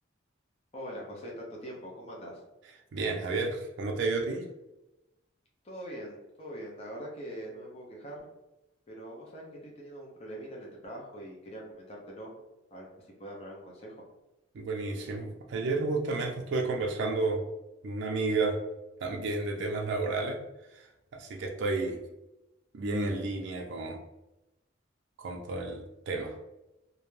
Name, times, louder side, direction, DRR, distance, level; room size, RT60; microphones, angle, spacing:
voice 1, 0.7-2.4 5.6-8.2 8.9-12.3 12.7-14.0, equal, 30° left, -2 dB, 0.5 m, -43 dB
voice 2, 2.9-4.4 14.5-17.4 17.8-18.6 19.0-20.4 21.1-22.0 22.7-24.0 25.2-26.4, right 3 dB, 60° right, 2 dB, 0.4 m, -31 dB
2.4 x 2.1 x 3.1 m, 0.96 s
head